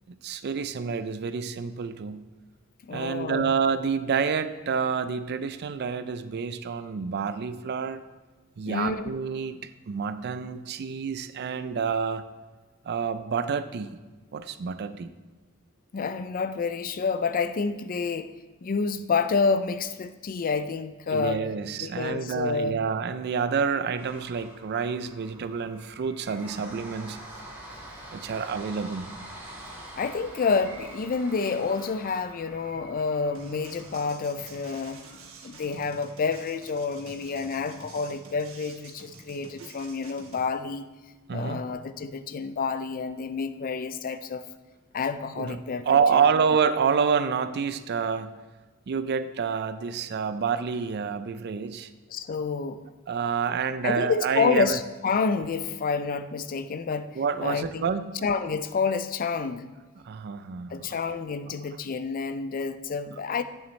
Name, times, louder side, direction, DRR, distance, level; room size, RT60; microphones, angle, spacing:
voice 1, 0.2-2.2 2.9-8.0 8.6-9.6 9.9-12.2 12.9-14.0 14.3-15.1 21.1-27.2 28.1-29.1 41.3-41.6 45.4-45.6 45.9-48.3 48.9-51.9 53.1-54.8 57.2-58.1 60.0-61.0, right 6 dB, 50° right, 12 dB, 0.4 m, -28 dB
voice 2, 2.8-3.5 8.7-9.1 15.9-18.3 18.6-21.5 21.8-22.8 30.0-35.0 35.4-40.9 41.3-44.4 44.9-46.3 52.1-52.8 53.8-57.9 58.2-59.7 60.7-63.4, left 5 dB, 40° left, 12 dB, 0.4 m, -29 dB
sound 1, 24.0-38.1 38.5-38.6 38.9-39.0, right 1 dB, 10° right, 2.7 m, -46 dB
sound 2, 33.3-40.4, right 3 dB, 75° right, 1.2 m, -48 dB
8.7 x 7.1 x 3.2 m, 1.3 s
head